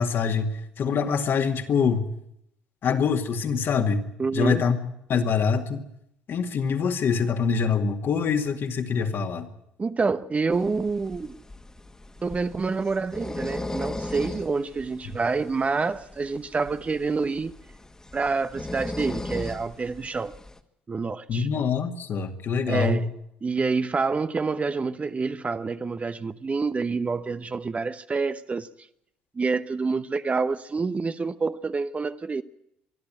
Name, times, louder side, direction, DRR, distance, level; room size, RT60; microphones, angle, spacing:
voice 1, 0.0-2.0 2.8-4.0 4.3-4.8 5.1-5.8 6.3-9.5 21.3-23.0, left 6 dB, 50° left, 2.3 m, -24 dB
voice 2, 4.2-4.6 9.8-11.4 12.2-17.6 18.1-20.3 20.9-21.5 22.7-23.1 23.4-28.7 29.3-32.4, right 4 dB, 30° right, 1.0 m, -27 dB
sound 1, 10.5-20.6, left 2 dB, 15° left, 1.8 m, -38 dB
24.5 x 12.0 x 9.0 m
hypercardioid pair, 60°, 5 cm